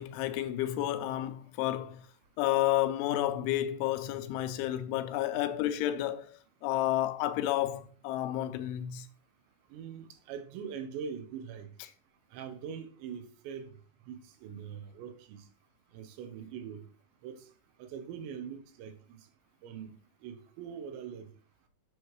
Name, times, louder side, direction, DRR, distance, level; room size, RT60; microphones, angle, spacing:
voice 1, 0.0-2.1 2.4-6.3 6.6-9.1, left 13 dB, 80° left, 3.0 m, -31 dB
voice 2, 9.7-11.7 12.3-13.7 14.1-15.4 15.9-16.8 17.2-17.4 17.8-19.2 19.6-19.9 20.2-21.3, right 7 dB, 75° right, 3.0 m, -42 dB
8.2 x 6.8 x 3.1 m
omnidirectional pair, 5.7 m